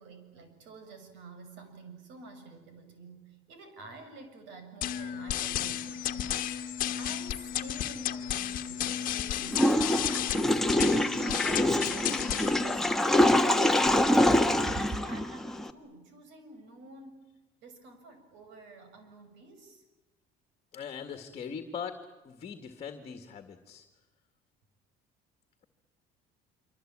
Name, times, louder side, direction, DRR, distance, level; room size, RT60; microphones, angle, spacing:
voice 1, 0.0-10.6 11.1-14.4 14.8-17.2 17.6-19.8, right 3 dB, 80° right, 7 dB, 7.0 m, -49 dB
sound 1, 4.8-12.8, left 11 dB, 50° left, 1.4 m, -33 dB
Water / Toilet flush, 9.5-15.7, left 1 dB, ahead, 1.3 m, -25 dB
voice 2, 20.7-22.0 22.2-23.8, left 7 dB, 35° left, 7 dB, 1.9 m, -40 dB
25.5 x 25.5 x 8.9 m, 1.1 s
cardioid pair, 155°, 19 cm